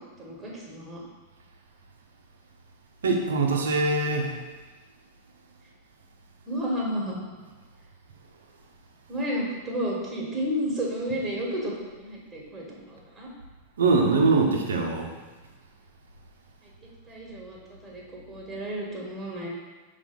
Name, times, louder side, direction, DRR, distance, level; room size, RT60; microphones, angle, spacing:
voice 1, 0.2-1.0 6.5-7.3 9.1-13.3 16.6-16.7 17.1-19.5, equal, 20° right, -4 dB, 1.7 m, -32 dB
voice 2, 3.0-4.4 13.8-15.1, right 3 dB, 65° right, 2 dB, 0.9 m, -23 dB
6.1 x 3.3 x 5.3 m, 1.3 s
figure-of-eight pair, 90°, 0 cm